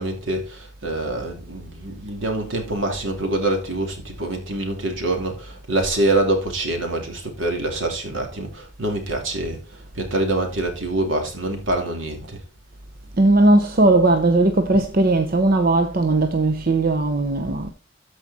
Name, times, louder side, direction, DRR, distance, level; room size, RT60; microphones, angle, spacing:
voice 1, 0.0-9.6 10.0-12.4, right 2 dB, 75° right, 2.6 m, -25 dB
voice 2, 13.2-17.7, right 2 dB, 45° right, 0.8 m, -18 dB
13.5 x 5.0 x 4.1 m
head